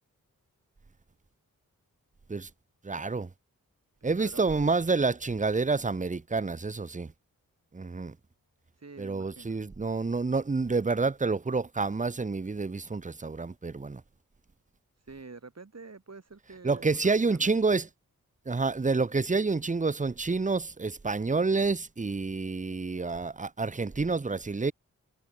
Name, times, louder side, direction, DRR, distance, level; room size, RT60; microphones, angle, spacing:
voice 1, 2.8-3.3 4.0-7.1 7.7-8.1 9.0-14.0 16.6-17.8 18.5-24.7, right 4 dB, 20° right, 0.8 m, -28 dB
voice 2, 4.0-4.5 8.8-9.6 15.0-17.8, right 4 dB, 50° right, 6.2 m, -48 dB
cardioid pair, 55°, 34 cm